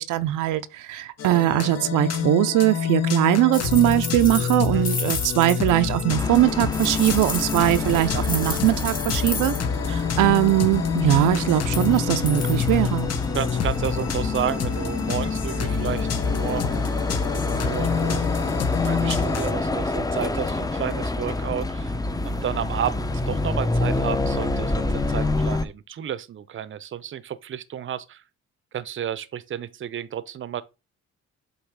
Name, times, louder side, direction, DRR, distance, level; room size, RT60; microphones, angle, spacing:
voice 1, 0.0-9.5 9.9-13.1, right 15 dB, 90° right, 0.6 m, -21 dB
dance loop, 1.2-19.5, left 8 dB, 55° left, 1.0 m, -27 dB
sound 1, 3.5-5.7 6.7-9.6 11.6-12.0 12.3-12.8 13.6-13.8, left 4 dB, 30° left, 1.5 m, -32 dB
sound 2, 6.1-25.7, left 2 dB, 10° left, 0.7 m, -27 dB
voice 2, 13.3-16.7 17.3-18.4 18.7-21.9 22.2-28.2 28.7-30.6, right 10 dB, 40° right, 0.6 m, -31 dB
7.9 x 3.1 x 4.7 m
cardioid pair, 90°, 30 cm